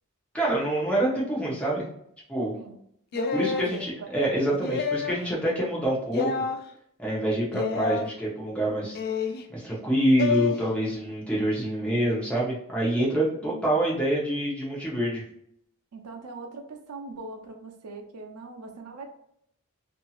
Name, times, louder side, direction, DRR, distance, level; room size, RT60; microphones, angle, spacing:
voice 1, 0.3-1.9 2.3-2.5 3.3-6.3 7.0-9.0 9.5-15.2, right 1 dB, 5° left, -5 dB, 0.8 m, -26 dB
sound 1, 3.1-3.7 4.6-5.2 6.1-6.6 7.5-8.0 8.9-9.4 10.2-10.5, left 5 dB, 45° left, 0.3 m, -28 dB
voice 2, 3.1-4.5 13.5-13.8 15.9-19.1, right 2 dB, 85° right, 4 dB, 0.6 m, -40 dB
2.7 x 2.7 x 2.4 m, 0.73 s
head